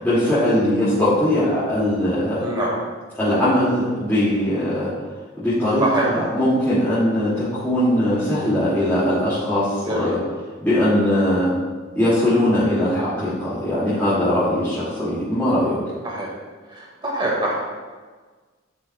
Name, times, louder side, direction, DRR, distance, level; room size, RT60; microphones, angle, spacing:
voice 1, 0.0-2.4 3.2-4.9 5.4-10.2 10.6-11.5 12.0-15.8, left 1 dB, 10° left, -14 dB, 2.4 m, -20 dB
voice 2, 2.4-2.7 5.8-6.1 9.9-10.1 16.0-16.3 16.7-17.5, right 1 dB, 25° right, -4 dB, 2.0 m, -24 dB
11.5 x 6.5 x 2.4 m, 1.4 s
head